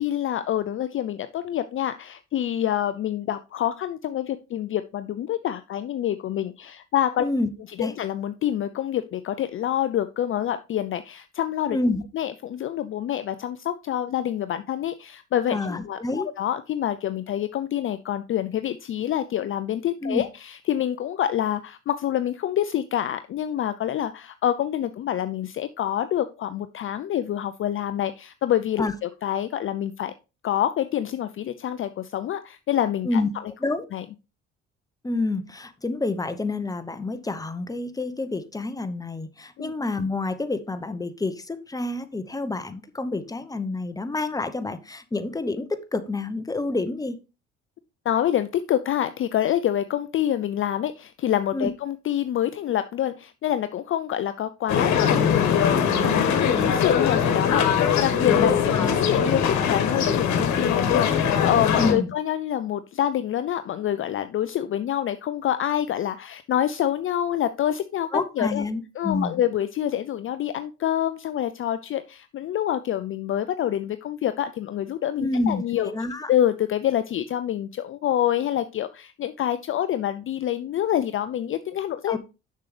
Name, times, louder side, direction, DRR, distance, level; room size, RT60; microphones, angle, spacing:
voice 1, 0.0-7.2 7.8-11.8 12.1-30.1 30.4-33.2 33.9-34.0 39.6-39.7 48.1-68.6 69.0-75.9 76.3-82.2, left 11 dB, 40° left, 12 dB, 0.5 m, -26 dB
voice 2, 7.2-7.5 7.8-7.9 11.7-12.0 15.5-16.3 20.0-20.2 28.8-28.9 33.0-33.3 33.6-33.8 35.0-47.2 51.5-51.7 58.4-59.0 61.8-62.1 68.1-69.4 75.2-76.3 82.1-82.2, left 2 dB, 10° left, 10 dB, 0.9 m, -28 dB
sound 1, 54.7-61.9, left 7 dB, 60° left, 1.4 m, -21 dB
6.7 x 6.5 x 3.3 m, 0.29 s
hypercardioid pair, 60°, 32 cm